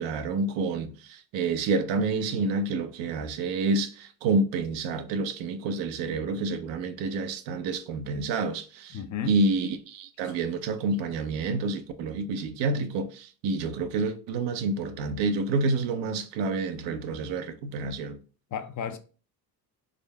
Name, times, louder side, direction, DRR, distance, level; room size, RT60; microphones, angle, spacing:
voice 1, 0.0-18.2, right 3 dB, 75° right, 0.6 m, -28 dB
voice 2, 8.9-9.4 18.5-19.0, left 8 dB, 45° left, 0.5 m, -33 dB
3.7 x 3.2 x 2.2 m
supercardioid pair, 65°, 45 cm